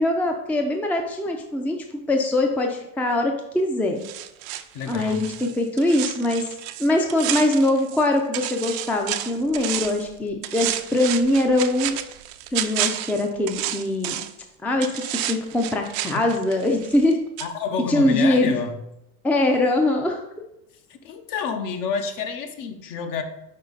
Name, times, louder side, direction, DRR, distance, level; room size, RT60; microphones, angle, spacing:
voice 1, 0.0-4.0 4.9-6.4 6.8-12.0 12.5-14.2 14.6-15.0 15.3-17.2 17.9-18.5 19.2-20.2, left 1 dB, 5° left, 3 dB, 0.5 m, -22 dB
sound 1, 4.0-8.1 8.3-10.1 10.4-14.4 14.8-17.1 17.4-17.5, right 13 dB, 55° right, 0.5 m, -31 dB
voice 2, 4.7-5.3 17.4-18.8 20.9-23.2, left 6 dB, 50° left, 6 dB, 0.9 m, -29 dB
5.6 x 4.2 x 4.0 m, 0.85 s
supercardioid pair, 100°, 43 cm